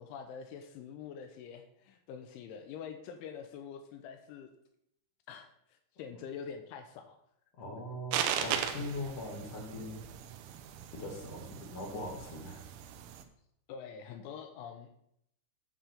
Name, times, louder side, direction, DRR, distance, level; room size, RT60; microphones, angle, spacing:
voice 1, 0.0-4.5 5.3-7.2 13.7-14.9, left 7 dB, 85° left, 6 dB, 3.1 m, -45 dB
voice 2, 7.6-10.0 10.9-12.6, left 1 dB, 45° left, -1 dB, 2.2 m, -41 dB
sound 1, 8.1-13.2, right 9 dB, 80° right, 2.9 m, -38 dB
9.9 x 3.8 x 7.2 m, 0.75 s
omnidirectional pair, 5.6 m